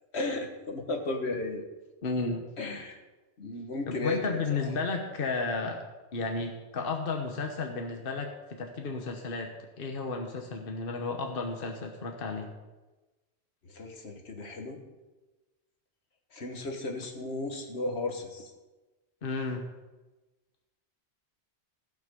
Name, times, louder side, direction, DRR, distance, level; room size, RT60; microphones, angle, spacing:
voice 1, 0.1-1.6 2.6-3.0 3.4-4.7 13.6-14.8 16.3-18.5, left 2 dB, 70° left, 3 dB, 1.7 m, -34 dB
voice 2, 2.0-2.5 3.9-5.8 6.1-8.3 8.6-9.5 9.8-12.5 19.2-19.6, left 4 dB, 55° left, 3 dB, 1.3 m, -33 dB
15.5 x 6.0 x 6.8 m, 1.2 s
omnidirectional pair, 1.1 m